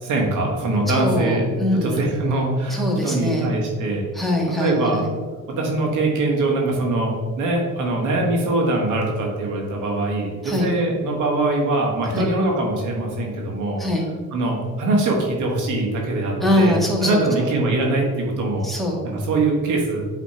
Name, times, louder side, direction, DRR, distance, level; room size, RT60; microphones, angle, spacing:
voice 1, 0.0-1.5 1.8-4.1 4.6-5.0 5.5-13.9 14.3-18.7 19.0-20.0, right 2 dB, 85° right, 0 dB, 1.7 m, -22 dB
voice 2, 0.9-2.0 2.7-3.5 4.1-5.1 10.4-10.7 12.1-12.3 13.8-14.1 16.4-17.5 18.6-19.0, left 1 dB, ahead, -2 dB, 1.7 m, -22 dB
8.2 x 3.4 x 4.3 m, 1.4 s
cardioid pair, 90°, 30 cm